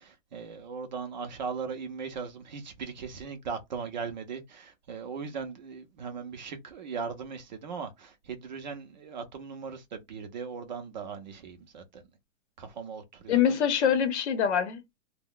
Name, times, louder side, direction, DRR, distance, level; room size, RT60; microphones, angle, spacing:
voice 1, 0.0-12.0 12.6-13.6, right 5 dB, 35° right, 0.4 m, -39 dB
voice 2, 13.3-15.0, left 8 dB, 60° left, 0.8 m, -25 dB
2.2 x 2.1 x 3.7 m
hypercardioid pair, 155°, 39 cm